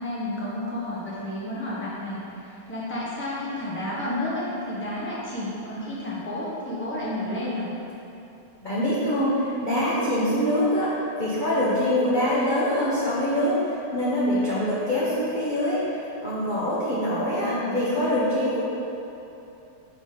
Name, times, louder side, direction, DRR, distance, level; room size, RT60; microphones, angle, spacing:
voice 1, 0.0-7.7 17.4-17.9, left 1 dB, 10° left, -7 dB, 0.7 m, -31 dB
voice 2, 8.6-18.6, left 1 dB, 45° left, -9 dB, 0.6 m, -24 dB
6.0 x 4.2 x 5.5 m, 2.9 s
omnidirectional pair, 2.3 m